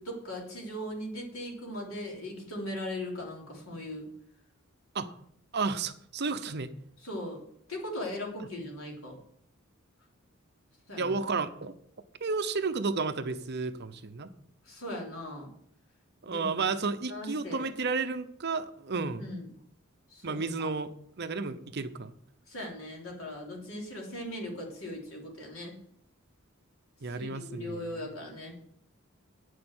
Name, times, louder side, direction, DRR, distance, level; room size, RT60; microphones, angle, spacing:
voice 1, 0.0-4.1 7.0-7.4 7.7-9.2 10.9-11.1 14.7-15.5 16.2-16.5 17.1-17.7 19.2-19.5 20.1-20.7 22.5-25.8 27.1-28.6, left 1 dB, 80° left, -1 dB, 3.5 m, -39 dB
voice 2, 5.5-6.7 11.0-11.7 12.2-14.3 16.2-19.3 20.2-20.9 21.2-22.1 27.0-27.9, right 4 dB, 50° right, 10 dB, 0.8 m, -32 dB
9.5 x 6.6 x 7.9 m, 0.67 s
head